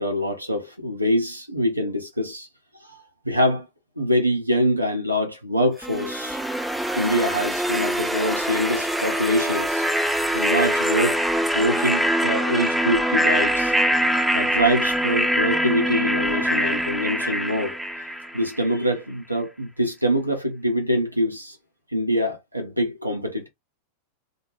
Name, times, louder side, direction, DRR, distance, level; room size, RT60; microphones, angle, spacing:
voice 1, 0.0-2.5 2.8-3.7 4.0-6.4 7.0-9.9 10.3-13.7 14.3-17.8 18.3-21.6 21.9-23.5, equal, 85° right, 0.6 m, -24 dB
sound 1, 5.8-18.7, equal, 5° right, 0.3 m, -23 dB
2.2 x 2.1 x 3.0 m
figure-of-eight pair, 90°, 0 cm